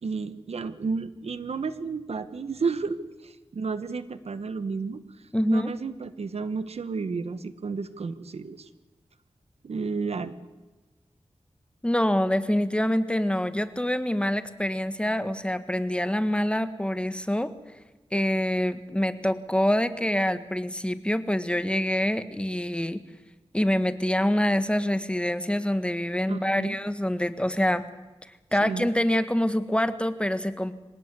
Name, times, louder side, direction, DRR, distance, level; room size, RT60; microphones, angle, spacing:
voice 1, 0.0-5.0 5.5-8.7 9.6-10.3 26.3-26.8 28.6-28.9, right 4 dB, 85° right, 12 dB, 1.3 m, -32 dB
voice 2, 5.3-5.7 11.8-17.5 18.1-23.0 23.5-27.9 28.5-30.7, left 1 dB, 10° left, 11 dB, 1.6 m, -25 dB
26.0 x 18.0 x 8.3 m, 1.2 s
cardioid pair, 55°, 10 cm